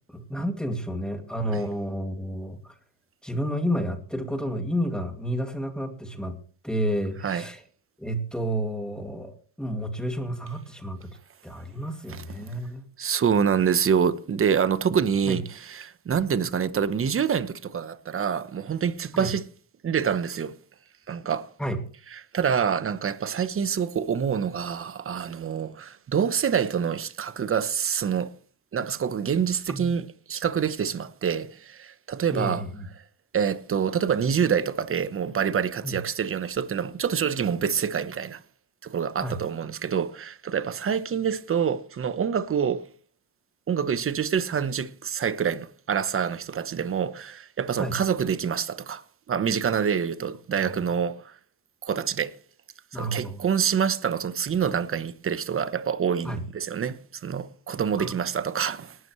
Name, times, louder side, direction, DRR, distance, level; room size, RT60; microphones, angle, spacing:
voice 1, 0.1-2.8 3.2-6.4 6.6-7.6 8.0-11.1 11.4-12.8 15.3-15.4 19.2-19.3 21.6-21.8 29.7-29.9 32.3-32.9 35.8-35.9 39.2-39.4 47.8-47.9 50.6-50.8 52.9-53.4 56.2-56.4 58.0-58.1, equal, ahead, 2.4 m, -30 dB
voice 2, 13.0-19.4 19.8-20.5 21.1-21.5 22.3-28.3 28.7-32.6 33.3-38.4 38.8-42.9 43.7-51.4 51.8-52.4 52.9-59.0, right 7 dB, 35° right, 1.0 m, -26 dB
19.0 x 12.5 x 3.2 m
cardioid pair, 125°, 39 cm